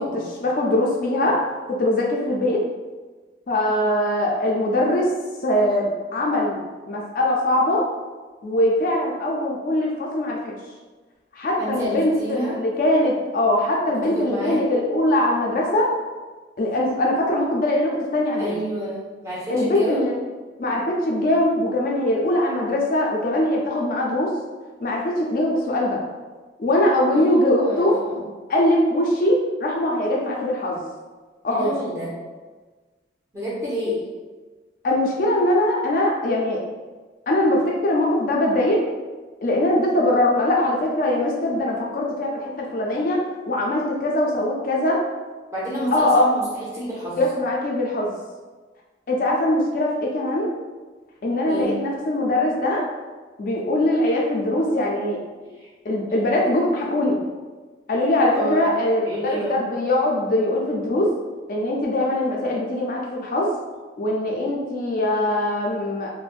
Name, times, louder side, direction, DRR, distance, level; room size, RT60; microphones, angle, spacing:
voice 1, 0.0-1.4 1.8-2.6 3.5-5.1 5.4-6.6 6.9-7.9 8.4-10.5 11.3-15.9 16.6-18.5 19.5-20.1 20.6-24.3 24.8-26.0 26.6-28.0 28.5-30.8 31.4-31.7 34.8-36.6 37.3-38.8 39.4-45.0 45.9-46.2 47.2-48.1 49.1-50.5 51.2-52.9 53.4-55.2 55.8-57.2 57.9-61.1 61.5-63.5 64.0-66.1, left 1 dB, 45° left, -2 dB, 0.4 m, -22 dB
voice 2, 11.6-12.6 13.9-14.6 18.4-20.0 27.1-28.3 31.5-32.1 33.3-34.0 45.5-47.2 51.5-51.7 55.4-55.7 58.3-58.7 59.0-59.6, right 1 dB, 15° right, -7 dB, 0.7 m, -29 dB
3.3 x 2.0 x 2.4 m, 1.3 s
head